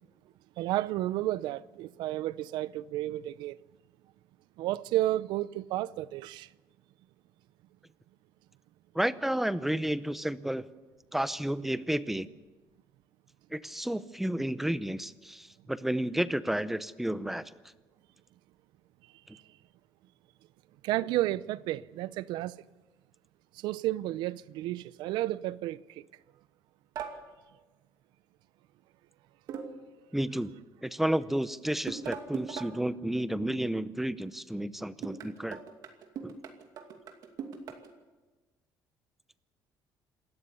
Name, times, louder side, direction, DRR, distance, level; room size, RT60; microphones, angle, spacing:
voice 1, 0.6-3.6 4.6-6.5 19.3-19.4 20.8-22.6 23.5-26.1, right 15 dB, 85° right, 0.6 m, -32 dB
voice 2, 8.9-10.7 11.1-12.3 13.5-17.4 30.1-30.5 30.8-35.6 36.2-36.3, right 1 dB, 5° right, 0.7 m, -31 dB
sound 1, 27.0-27.2 29.5-29.9 31.9-32.8 35.0-37.9, right 6 dB, 60° right, 2.5 m, -40 dB
27.5 x 13.5 x 8.3 m
cardioid pair, 145°, 8 cm